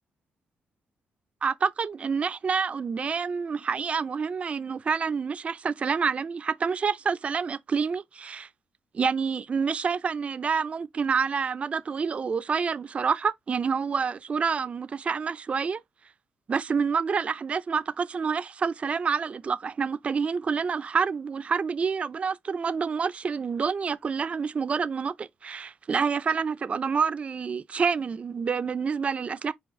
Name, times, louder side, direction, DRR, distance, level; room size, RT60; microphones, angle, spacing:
voice 1, 1.4-8.5 8.9-15.8 16.5-29.5, right 5 dB, 35° right, 0.3 m, -28 dB
4.5 x 4.3 x 2.3 m
cardioid pair, 95°, 4 cm